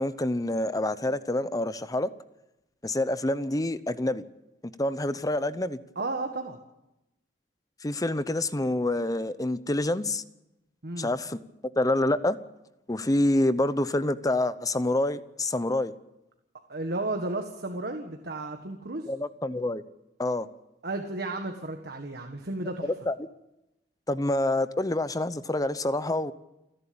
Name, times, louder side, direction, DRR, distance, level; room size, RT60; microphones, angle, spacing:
voice 1, 0.0-2.1 2.8-4.2 4.8-5.8 7.8-10.2 11.0-11.4 11.8-12.4 12.9-15.9 19.1-19.8 20.2-20.5 23.1-23.2 24.1-26.3, left 1 dB, 20° left, 14 dB, 0.8 m, -27 dB
voice 2, 5.9-6.6 10.8-11.1 16.7-19.1 20.8-22.9, right 2 dB, 60° right, 4 dB, 1.6 m, -33 dB
29.5 x 11.5 x 8.7 m, 0.92 s
head